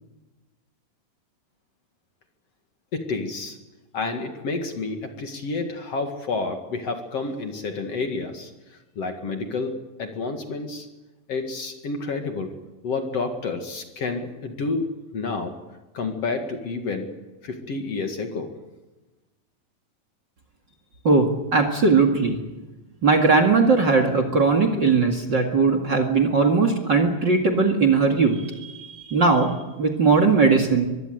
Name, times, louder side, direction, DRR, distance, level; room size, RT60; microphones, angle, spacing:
voice 1, 2.9-3.6 3.9-8.5 9.0-9.7 10.0-10.9 11.3-12.5 12.8-15.5 15.9-17.1 17.4-18.5, left 3 dB, 50° left, 5 dB, 2.9 m, -29 dB
voice 2, 21.0-22.4 23.0-29.5 29.8-30.9, right 4 dB, 35° right, 7 dB, 2.3 m, -19 dB
24.0 x 23.0 x 8.0 m, 1.1 s
omnidirectional pair, 4.0 m